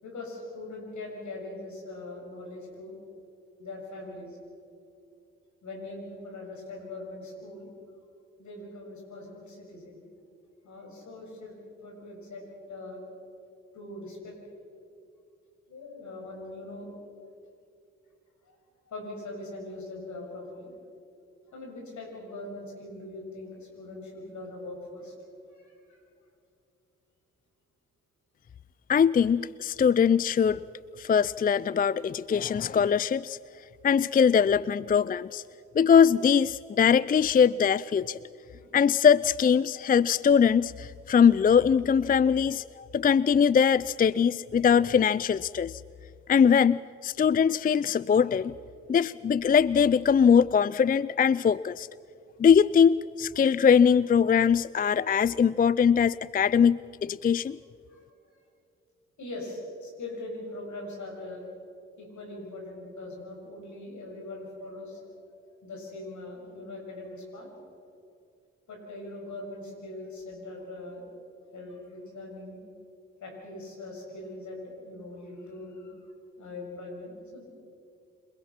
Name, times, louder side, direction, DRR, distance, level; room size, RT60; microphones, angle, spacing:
voice 1, 0.0-3.0 3.6-4.4 5.6-7.7 8.4-9.9 10.6-13.0 13.7-14.5 15.7-16.9 18.4-18.5 18.9-20.7 21.5-25.1 25.4-26.0 38.5-38.7 57.9-58.4 59.2-61.5 62.0-65.0 65.6-67.5 68.7-71.1 71.5-72.6 73.2-76.0 76.4-77.4, left 2 dB, 70° left, 0 dB, 7.2 m, -41 dB
voice 2, 28.9-30.6 31.0-33.4 33.8-35.4 35.8-38.2 38.7-45.8 46.3-48.5 48.9-51.9 52.4-57.6, left 7 dB, 30° left, 20 dB, 0.4 m, -22 dB
27.0 x 21.0 x 6.0 m, 2.5 s
supercardioid pair, 45°, 30 cm